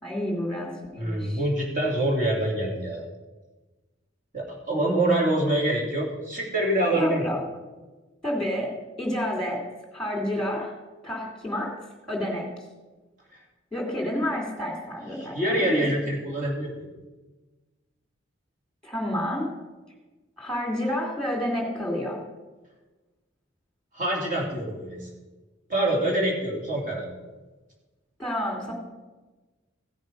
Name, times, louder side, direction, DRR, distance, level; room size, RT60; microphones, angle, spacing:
voice 1, 0.0-1.4 6.9-7.4 8.2-8.7 9.0-9.6 9.9-10.7 11.0-11.8 12.1-12.5 13.7-15.8 18.8-19.5 20.4-22.2 28.2-28.7, left 1 dB, 5° left, 0 dB, 2.8 m, -29 dB
voice 2, 1.0-3.0 4.3-7.2 13.3-13.4 15.2-16.9 23.9-25.1 25.7-27.1, right 1 dB, 45° right, -2 dB, 2.9 m, -25 dB
16.0 x 6.4 x 5.3 m, 1.2 s
head